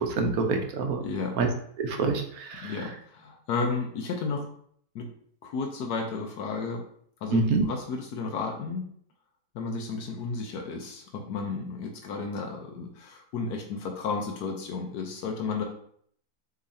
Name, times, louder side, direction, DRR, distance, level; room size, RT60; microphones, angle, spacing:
voice 1, 0.0-1.0 1.4-1.5 1.8-2.8 7.3-7.6, right 3 dB, 70° right, 4 dB, 1.2 m, -26 dB
voice 2, 1.0-1.4 2.6-4.5 4.9-5.1 5.4-6.9 7.2-8.8 9.5-15.6, left 4 dB, 85° left, 1 dB, 1.3 m, -33 dB
6.4 x 3.1 x 2.7 m, 0.62 s
omnidirectional pair, 1.7 m